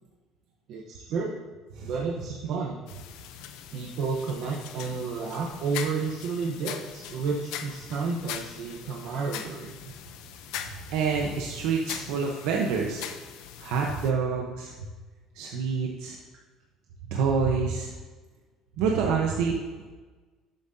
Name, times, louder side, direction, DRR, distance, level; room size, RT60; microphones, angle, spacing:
voice 1, 0.7-1.3 1.8-2.8 3.7-9.7, right 4 dB, 55° right, -3 dB, 0.9 m, -31 dB
sound 1, 2.9-14.1, left 9 dB, 80° left, 0.6 m, -41 dB
voice 2, 10.9-13.0 13.6-14.9 15.3-16.2 17.1-17.9 18.8-19.6, right 5 dB, 85° right, 0 dB, 0.9 m, -27 dB
11.0 x 7.8 x 2.7 m, 1.3 s
cardioid pair, 175°, 0 cm